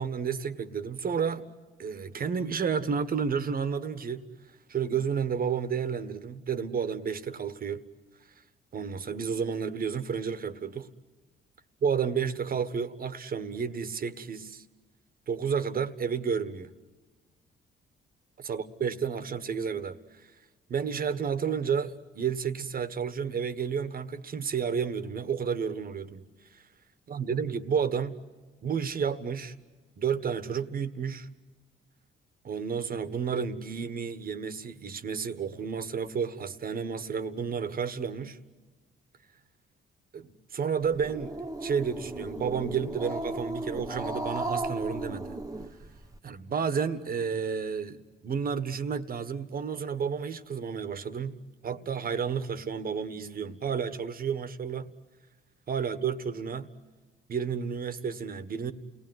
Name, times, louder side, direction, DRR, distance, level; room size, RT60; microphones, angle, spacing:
voice 1, 0.0-1.5 1.8-4.2 4.7-7.8 8.7-10.9 11.8-14.6 15.3-16.7 18.4-20.3 20.7-26.2 26.5-26.6 27.1-28.2 28.6-29.5 30.0-31.3 32.4-38.4 40.1-41.3 41.6-45.4 45.8-45.9 46.2-54.9 55.7-56.7 57.3-58.7, right 6 dB, 45° right, 1.4 m, -31 dB
Growling, 40.8-46.2, right 2 dB, 15° right, 1.3 m, -35 dB
29.0 x 19.5 x 9.5 m
cardioid pair, 90°, 20 cm